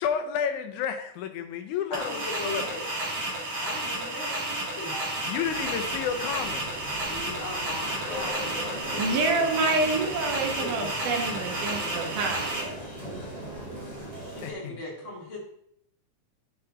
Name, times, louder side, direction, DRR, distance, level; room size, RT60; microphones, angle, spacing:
voice 1, 0.0-2.6 5.2-6.7 14.4-14.8, left 7 dB, 80° left, 8 dB, 2.1 m, -31 dB
voice 2, 1.9-2.8 3.6-5.0 7.1-11.4 14.1-15.4, left 2 dB, 45° left, -3 dB, 2.9 m, -39 dB
sound 1, 1.9-12.6, right 1 dB, 60° right, 3.2 m, -32 dB
sound 2, 5.4-14.5, right 1 dB, 15° left, 2.0 m, -39 dB
voice 3, 8.7-12.8 14.1-14.4, right 3 dB, 90° right, 3 dB, 2.9 m, -28 dB
9.5 x 7.0 x 3.6 m, 0.71 s
omnidirectional pair, 3.5 m